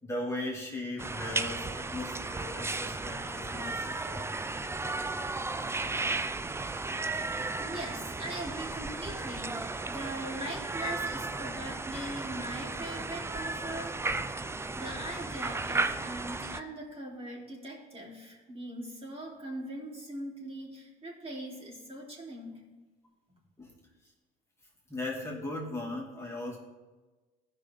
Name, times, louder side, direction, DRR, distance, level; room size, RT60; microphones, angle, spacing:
voice 1, 0.0-4.3 23.6-23.7 24.9-26.6, left 2 dB, 15° left, -4 dB, 2.4 m, -38 dB
sound 1, 1.0-16.6, right 3 dB, 10° right, 0.5 m, -34 dB
voice 2, 7.2-14.0 14.7-22.6 23.3-23.4, right 1 dB, 30° right, -3 dB, 3.1 m, -41 dB
15.5 x 5.6 x 3.5 m, 1.3 s
hypercardioid pair, 65°, 21 cm